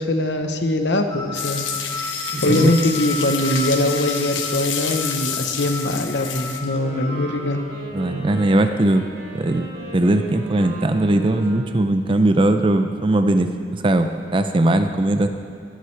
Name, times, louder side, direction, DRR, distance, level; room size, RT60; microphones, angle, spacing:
voice 1, 0.0-1.7 2.4-7.6, left 1 dB, 60° left, 6 dB, 0.9 m, -22 dB
sound 1, 1.1-7.6, left 3 dB, 20° left, 1.8 m, -33 dB
sound 2, 1.3-6.6, left 7 dB, 90° left, 1.0 m, -29 dB
voice 2, 2.3-2.7 4.8-5.0 7.9-9.1 9.3-9.7 9.9-15.3, right 1 dB, 25° right, 8 dB, 0.5 m, -19 dB
Wind instrument woodwind instrument, 6.7-11.9, right 3 dB, 75° right, 3.1 m, -36 dB
17.0 x 11.5 x 3.3 m, 2.3 s
head